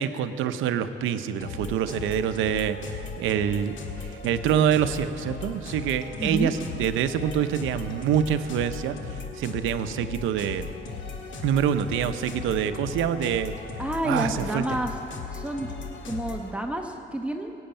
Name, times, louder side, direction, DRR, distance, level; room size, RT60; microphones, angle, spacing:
voice 1, 0.0-10.7 11.4-13.5 14.0-14.6, right 9 dB, 90° right, 10 dB, 0.7 m, -26 dB
sound 1, 1.4-16.5, left 4 dB, 75° left, 1.7 m, -37 dB
voice 2, 6.2-6.5 13.8-14.9 15.3-15.7 16.1-17.5, right 1 dB, 5° right, 2 dB, 1.0 m, -29 dB
17.0 x 7.9 x 8.9 m, 2.8 s
cardioid pair, 90°, 20 cm